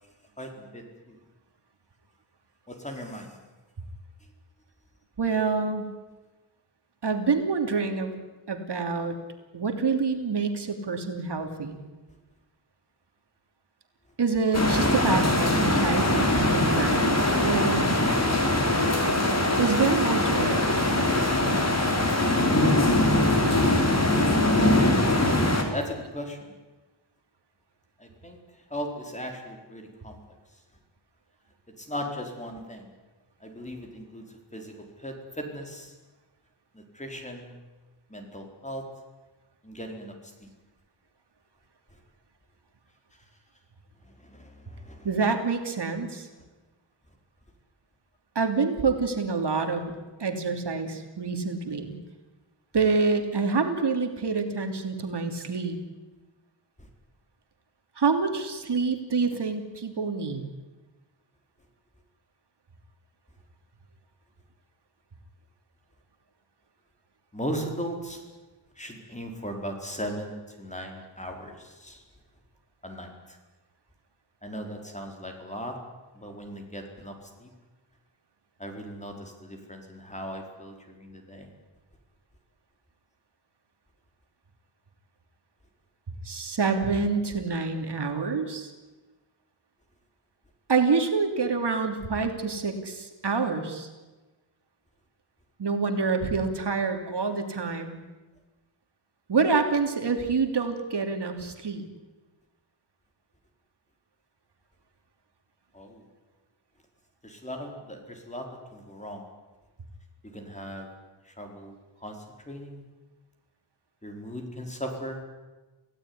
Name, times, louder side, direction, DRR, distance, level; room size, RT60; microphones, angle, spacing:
voice 1, 0.4-1.2 2.7-3.4 25.7-26.5 28.0-28.4 28.7-30.2 31.8-32.9 33.4-35.9 36.7-37.5 38.1-38.9 39.6-40.5 44.0-45.1 56.8-56.9 67.3-68.2 68.8-72.0 72.8-73.4 74.4-75.8 76.1-77.5 78.6-81.5 105.7-106.1 107.2-109.3 110.2-110.9 111.2-112.8 114.0-115.2, equal, 15° left, 3 dB, 4.7 m, -38 dB
voice 2, 5.2-5.9 7.0-8.1 8.5-9.2 9.5-11.8 14.2-17.2 17.4-18.0 19.6-20.6 45.0-46.3 48.3-49.9 50.2-52.0 52.7-55.8 58.0-60.5 86.2-88.7 90.7-93.9 95.6-98.0 99.3-101.9, right 4 dB, 60° right, 5 dB, 2.9 m, -27 dB
sound 1, 14.5-25.6, left 1 dB, 35° left, 4.2 m, -22 dB
28.0 x 17.0 x 9.8 m, 1.2 s
wide cardioid pair, 120°, 46 cm